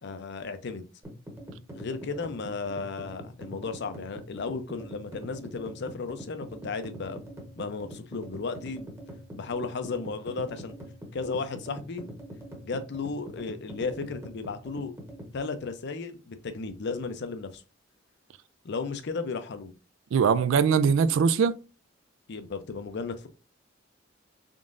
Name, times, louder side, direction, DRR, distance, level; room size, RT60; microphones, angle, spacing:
voice 1, 0.0-0.9 1.7-7.2 7.6-8.9 9.3-10.7 11.1-12.0 12.6-14.9 15.3-17.6 18.6-19.7 22.3-23.3, left 4 dB, 60° left, 0.5 m, -34 dB
sound 1, 1.0-15.3, equal, 15° right, 1.0 m, -43 dB
voice 2, 20.1-21.6, right 6 dB, 70° right, 0.3 m, -21 dB
3.7 x 3.6 x 2.5 m
head